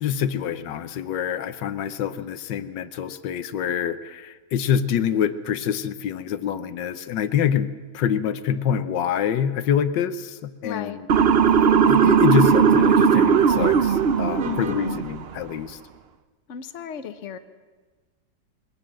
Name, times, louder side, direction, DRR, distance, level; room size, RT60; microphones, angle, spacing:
voice 1, 0.0-7.7 7.9-11.1 11.9-15.8, left 8 dB, 85° left, 13 dB, 1.5 m, -26 dB
voice 2, 10.6-11.0 14.4-15.0 16.5-17.4, left 8 dB, 50° left, 9 dB, 1.2 m, -34 dB
Motor vehicle (road) / Siren, 11.1-15.2, right 7 dB, 50° right, 0.7 m, -18 dB
22.0 x 17.5 x 7.6 m, 1.4 s
omnidirectional pair, 1.9 m